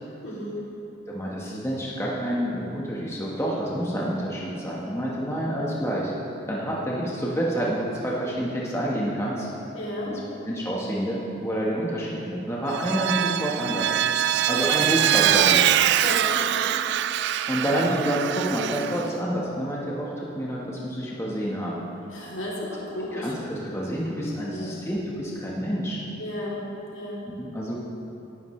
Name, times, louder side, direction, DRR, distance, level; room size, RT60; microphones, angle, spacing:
voice 1, 0.2-0.6 9.7-10.2 16.0-16.7 22.1-23.4 24.5-24.7 26.2-26.6 26.9-27.3, left 1 dB, 70° left, -6 dB, 3.1 m, -33 dB
voice 2, 1.1-6.1 6.5-9.5 10.1-14.0 14.5-15.6 17.5-21.8 23.1-26.0 27.4-27.8, right 1 dB, 15° left, -5 dB, 1.3 m, -28 dB
Vehicle, 12.7-19.1, right 11 dB, 60° right, 0.3 m, -23 dB
17.5 x 11.0 x 3.2 m, 2.9 s
head